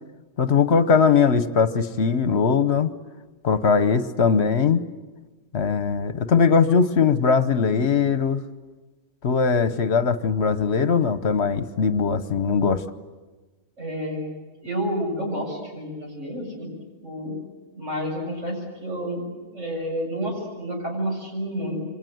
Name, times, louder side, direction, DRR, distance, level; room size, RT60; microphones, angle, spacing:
voice 1, 0.4-2.9 3.4-4.8 5.5-8.4 9.2-12.8, left 5 dB, 65° left, 12 dB, 1.3 m, -20 dB
voice 2, 13.8-14.3 14.6-16.7 17.0-17.4 17.8-21.8, equal, 85° right, 0 dB, 7.9 m, -30 dB
27.5 x 24.5 x 7.9 m, 1.2 s
omnidirectional pair, 1.2 m